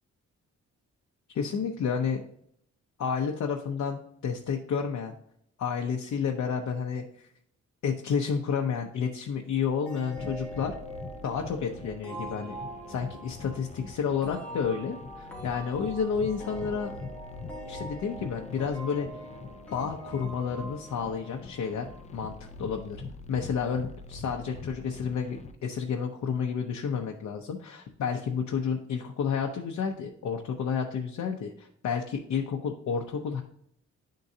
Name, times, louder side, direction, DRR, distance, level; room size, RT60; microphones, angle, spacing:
voice 1, 1.3-2.2 3.0-5.1 5.6-7.3 7.8-10.7 11.2-12.6 12.9-16.9 17.7-19.1 19.7-21.9 22.1-23.0 23.3-33.4, left 6 dB, 70° left, 2 dB, 0.7 m, -30 dB
sound 1, 9.9-22.3, right 1 dB, 5° left, 1.4 m, -44 dB
sound 2, 10.2-25.5, left 3 dB, 25° left, 0.4 m, -44 dB
10.5 x 3.8 x 2.7 m, 0.70 s
wide cardioid pair, 135°, 29 cm